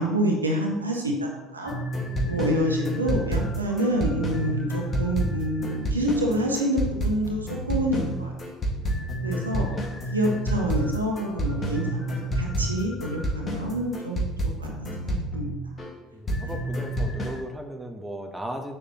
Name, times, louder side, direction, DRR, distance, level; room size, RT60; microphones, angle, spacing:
voice 1, 0.0-1.7 2.3-8.3 9.2-9.7 10.1-14.3 14.6-15.5, equal, 85° right, 0 dB, 1.1 m, -27 dB
sound 1, 1.7-15.9 16.3-17.4, right 1 dB, 35° left, 1.9 m, -29 dB
voice 2, 2.0-2.6 9.3-10.0 16.1-18.8, right 1 dB, 10° right, 4 dB, 1.0 m, -37 dB
7.7 x 6.5 x 3.0 m, 1.0 s
figure-of-eight pair, 60°, 0 cm